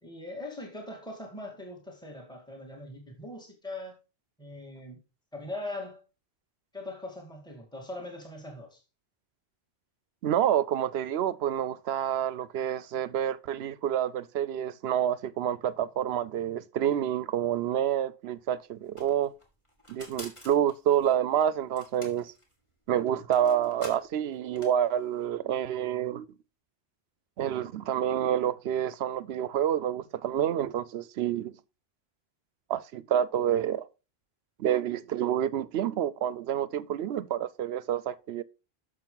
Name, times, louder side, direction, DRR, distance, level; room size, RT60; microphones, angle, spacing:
voice 1, 0.0-3.9 4.4-5.0 5.3-6.0 6.7-8.8 12.0-12.3, left 2 dB, 5° left, 2.1 m, -41 dB
voice 2, 10.2-19.3 19.9-22.3 22.9-26.3 27.4-31.6 32.7-33.9 34.6-38.4, right 10 dB, 85° right, 0.8 m, -28 dB
sound 1, 18.3-18.4 18.5-25.3, left 1 dB, 30° left, 2.4 m, -49 dB
9.0 x 6.5 x 3.9 m
omnidirectional pair, 1.0 m